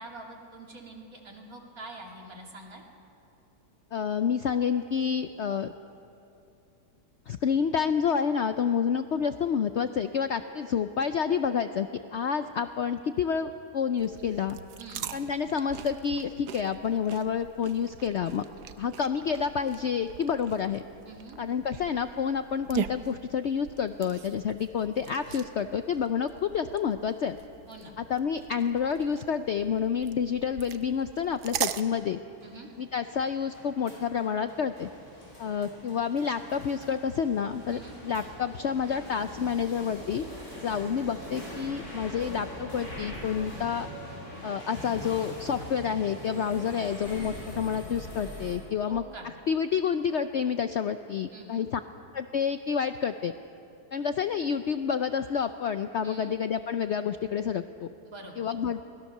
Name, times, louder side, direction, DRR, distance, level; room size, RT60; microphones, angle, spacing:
voice 1, 0.0-2.8 14.8-15.1 21.0-21.4 27.7-28.0 32.4-32.7 37.7-38.0 48.9-49.3 51.3-51.7 56.0-56.3 58.0-58.4, right 2 dB, 55° right, 0 dB, 3.1 m, -45 dB
voice 2, 3.9-5.7 7.3-14.6 15.1-18.4 18.8-20.8 21.4-27.4 28.0-32.2 32.8-34.9 35.4-40.3 40.6-43.9 44.4-49.0 49.5-51.8 52.1-53.3 53.9-57.9 58.4-58.8, left 7 dB, 65° left, 9 dB, 0.7 m, -29 dB
sound 1, 14.0-31.8, right 10 dB, 75° right, 1.3 m, -41 dB
sound 2, 29.9-48.5, equal, 45° left, 8.0 m, -43 dB
24.0 x 19.0 x 6.6 m, 2.7 s
omnidirectional pair, 1.8 m